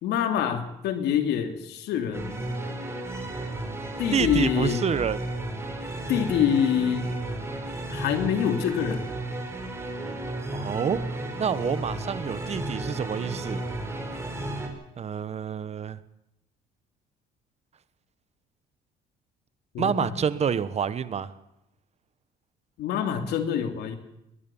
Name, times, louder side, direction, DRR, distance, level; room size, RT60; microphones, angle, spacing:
voice 1, 0.0-2.3 4.0-4.9 6.1-7.1 7.9-9.0 19.7-20.2 22.8-24.0, left 8 dB, 80° left, 7 dB, 2.9 m, -26 dB
sound 1, 2.1-14.7, right 1 dB, 15° right, 4.9 m, -33 dB
voice 2, 4.1-5.2 10.5-11.0 11.4-13.6 15.0-16.0 19.8-21.3, right 7 dB, 40° right, 15 dB, 1.2 m, -28 dB
21.5 x 18.0 x 7.1 m, 0.84 s
cardioid pair, 110°, 17 cm